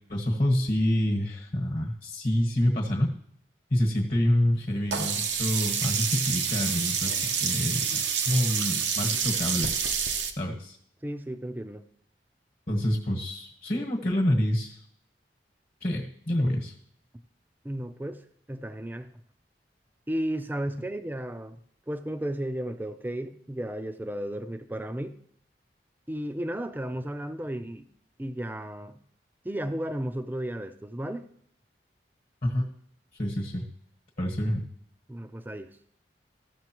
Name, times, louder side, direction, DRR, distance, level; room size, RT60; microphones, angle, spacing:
voice 1, 0.1-3.1 3.7-9.7 10.4-10.8 12.7-14.8 15.8-16.7 32.4-32.6 33.2-33.6 34.2-34.6, left 1 dB, 45° left, 0 dB, 1.3 m, -27 dB
Sink (filling or washing), 4.9-10.3, right 7 dB, 85° right, 0.8 m, -28 dB
voice 2, 11.0-11.8 17.6-18.2 18.5-19.1 20.1-21.6 21.9-25.2 26.1-27.9 28.2-29.0 29.4-31.3 35.1-35.8, right 1 dB, 10° right, 9 dB, 0.5 m, -34 dB
14.5 x 6.7 x 3.0 m, 0.66 s
head